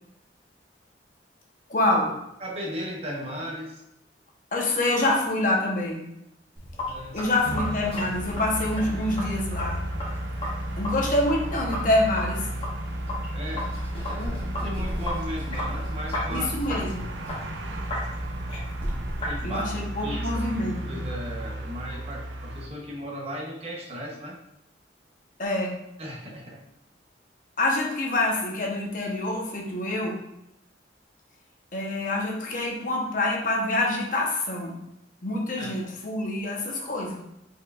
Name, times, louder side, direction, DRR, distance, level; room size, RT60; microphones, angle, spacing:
voice 1, 1.7-2.1 4.5-6.0 7.1-9.8 10.8-12.5 16.3-17.1 19.4-21.0 25.4-25.7 27.6-30.2 31.7-34.7 35.2-37.2, left 2 dB, 50° left, -1 dB, 1.0 m, -26 dB
voice 2, 2.4-3.8 6.9-7.2 13.3-13.7 14.0-16.4 19.3-19.7 20.0-20.5 20.9-24.4 26.0-26.6 35.6-35.9, equal, 35° right, -1 dB, 0.9 m, -36 dB
Sink (filling or washing), 6.6-19.4, left 1 dB, 30° left, 1.4 m, -35 dB
sound 1, 7.4-22.7, right 1 dB, 90° right, 0.6 m, -33 dB
4.7 x 4.7 x 2.4 m, 0.85 s
head